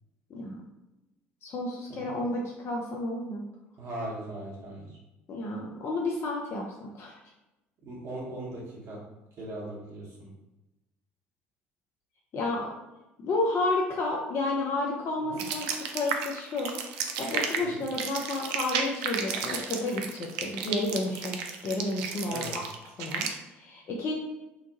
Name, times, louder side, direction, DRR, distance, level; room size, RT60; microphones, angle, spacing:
voice 1, 0.3-0.7 1.4-3.4 5.3-7.1 12.3-12.7 13.2-22.7 23.0-24.1, left 2 dB, 40° left, -2 dB, 0.5 m, -31 dB
voice 2, 3.8-4.9 7.8-8.6 8.9-9.0 9.4-10.3 15.3-15.4 17.6-17.8 22.3-22.6, right 1 dB, 50° right, -4 dB, 1.1 m, -39 dB
sound 1, 15.4-23.3, right 6 dB, 65° right, 0.3 m, -33 dB
2.8 x 2.2 x 2.8 m, 0.99 s
figure-of-eight pair, 60°, 6 cm